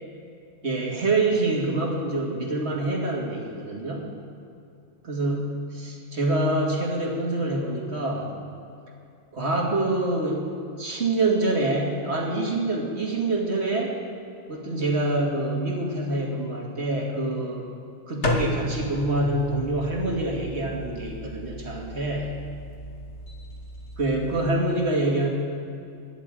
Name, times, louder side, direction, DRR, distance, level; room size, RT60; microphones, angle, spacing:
voice 1, 0.6-4.1 5.0-8.3 9.3-10.5 10.8-14.0 14.5-17.7 18.1-22.3 24.0-25.3, right 2 dB, 50° right, -2 dB, 2.5 m, -26 dB
sound 1, 18.2-24.4, left 1 dB, 55° left, 1.8 m, -33 dB
24.5 x 11.0 x 3.8 m, 2.5 s
omnidirectional pair, 1.4 m